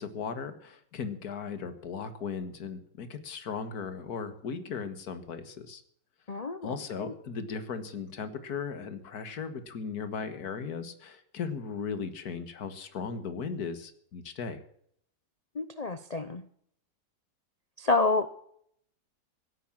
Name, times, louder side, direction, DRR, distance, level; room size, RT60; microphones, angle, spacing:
voice 1, 0.0-5.8 6.6-14.6, left 5 dB, 60° left, 10 dB, 2.0 m, -37 dB
voice 2, 6.3-6.7 7.0-7.1 15.6-16.5 17.8-18.3, left 3 dB, 85° left, 11 dB, 0.3 m, -28 dB
16.5 x 9.8 x 7.3 m, 0.68 s
omnidirectional pair, 1.9 m